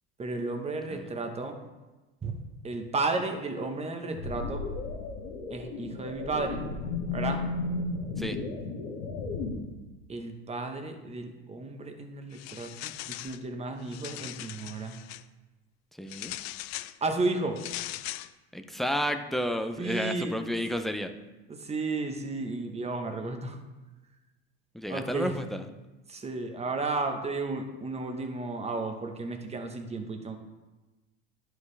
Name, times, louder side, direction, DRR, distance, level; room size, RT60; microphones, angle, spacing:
voice 1, 0.2-1.6 2.2-2.4 2.6-4.6 5.5-6.6 7.1-7.5 10.1-15.0 17.0-17.6 19.8-20.4 21.5-23.6 24.9-25.3 26.1-30.4, right 3 dB, 20° right, 5 dB, 1.0 m, -33 dB
sound 1, 4.1-9.5, left 3 dB, 80° left, 1.7 m, -34 dB
sound 2, 12.3-13.4 13.8-15.2 16.1-17.0 17.6-18.3, left 16 dB, 60° left, 0.4 m, -39 dB
voice 2, 16.0-16.3 18.5-21.1 24.7-25.7, equal, ahead, 7 dB, 0.4 m, -31 dB
11.0 x 4.8 x 3.3 m, 1.1 s
supercardioid pair, 105°, 33 cm